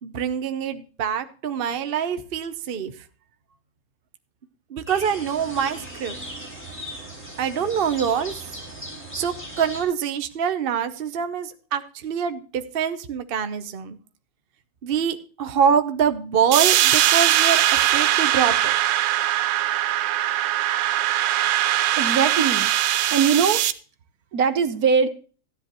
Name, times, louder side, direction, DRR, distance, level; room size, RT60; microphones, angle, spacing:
voice 1, 0.0-2.9 4.7-6.2 7.4-8.5 9.1-14.0 14.8-17.6 17.9-18.8, right 7 dB, 45° right, 9 dB, 0.8 m, -25 dB
sound 1, 4.9-9.8, right 1 dB, 5° left, 4.3 m, -37 dB
sound 2, 16.5-23.7, right 12 dB, 90° right, 1.4 m, -21 dB
voice 2, 22.0-22.7 23.1-23.6 24.3-25.1, right 6 dB, 60° right, 11 dB, 1.3 m, -21 dB
14.0 x 10.0 x 3.0 m, 0.38 s
omnidirectional pair, 1.9 m